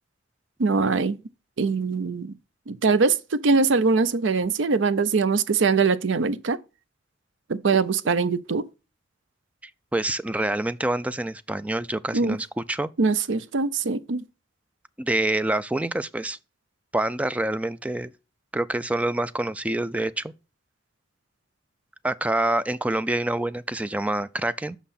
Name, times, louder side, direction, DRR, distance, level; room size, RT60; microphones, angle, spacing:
voice 1, 0.6-1.2 1.6-2.3 2.7-6.6 7.5-8.7 12.1-12.4 13.0-14.2, right 4 dB, 70° right, 0.6 m, -22 dB
voice 2, 9.6-12.9 15.0-16.4 16.9-18.1 18.5-20.3 22.0-24.8, right 1 dB, 5° right, 0.3 m, -26 dB
6.1 x 5.7 x 4.1 m
head